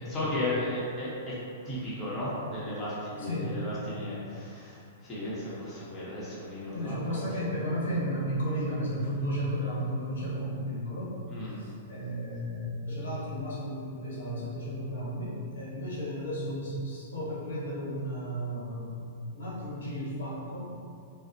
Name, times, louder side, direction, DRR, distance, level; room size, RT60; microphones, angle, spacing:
voice 1, 0.0-1.4 1.6-7.3 11.3-11.6, left 1 dB, 20° left, -9 dB, 0.8 m, -35 dB
voice 2, 3.2-3.6 6.7-11.1 11.5-19.0 19.3-20.8, equal, 90° left, -7 dB, 1.1 m, -33 dB
3.9 x 2.0 x 2.6 m, 2.4 s
hypercardioid pair, 140°, 0 cm